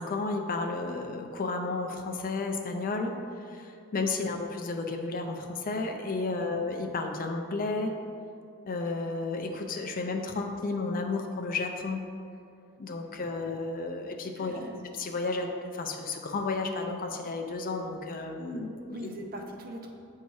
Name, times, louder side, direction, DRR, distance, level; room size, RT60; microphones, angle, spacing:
voice 1, 0.0-8.0 8.7-12.0 12.8-14.6 14.9-19.1, left 3 dB, 40° left, 4 dB, 0.4 m, -32 dB
voice 2, 6.4-6.7 14.4-14.8 18.9-19.9, right 1 dB, 40° right, 2 dB, 0.6 m, -42 dB
8.2 x 2.8 x 4.6 m, 2.5 s
head